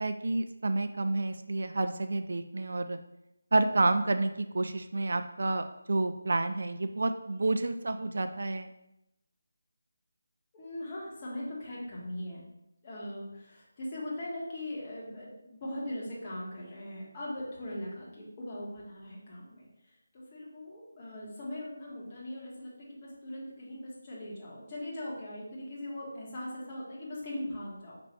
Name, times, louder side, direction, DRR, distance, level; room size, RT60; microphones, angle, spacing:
voice 1, 0.0-3.0 3.5-8.7, right 2 dB, 60° right, 9 dB, 0.3 m, -29 dB
voice 2, 10.5-12.4 12.8-19.7 20.1-28.0, left 1 dB, 25° left, -6 dB, 1.4 m, -40 dB
5.6 x 3.0 x 3.1 m, 0.86 s
figure-of-eight pair, 165°, 0 cm